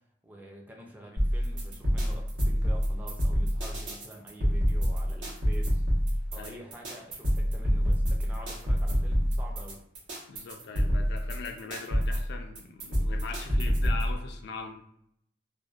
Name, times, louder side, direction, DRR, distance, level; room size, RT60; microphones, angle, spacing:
voice 1, 0.2-6.0 6.3-9.8, equal, 10° right, 0 dB, 0.4 m, -47 dB
sound 1, 1.2-14.1, equal, 85° right, 0.9 m, -27 dB
voice 2, 10.3-14.7, left 4 dB, 60° left, 4 dB, 0.3 m, -40 dB
2.4 x 2.1 x 2.3 m, 0.72 s
head